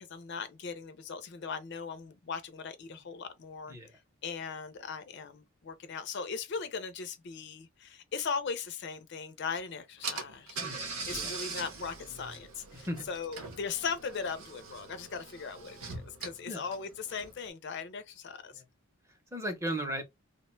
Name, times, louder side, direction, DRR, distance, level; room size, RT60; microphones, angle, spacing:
voice 1, 0.0-3.7 4.2-18.5, left 5 dB, 50° left, 0.4 m, -39 dB
Car / Engine, 9.6-9.7 10.0-17.5, right 4 dB, 80° right, 0.8 m, -42 dB
voice 2, 12.7-13.1 16.5-16.7 18.5-18.6 19.3-20.1, equal, 15° right, 0.6 m, -36 dB
2.9 x 2.1 x 3.0 m
head